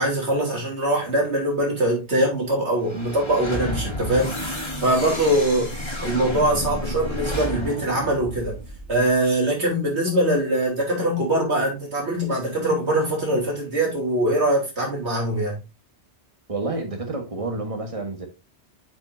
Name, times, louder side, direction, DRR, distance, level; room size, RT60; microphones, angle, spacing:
voice 1, 0.0-5.7 6.0-8.6 8.9-15.6, right 1 dB, 75° right, 3.3 m, -22 dB
sound 1, 2.8-9.1, left 1 dB, 25° left, 1.9 m, -31 dB
voice 2, 16.5-18.3, right 2 dB, 30° right, 1.6 m, -29 dB
8.6 x 5.4 x 2.7 m
omnidirectional pair, 1.1 m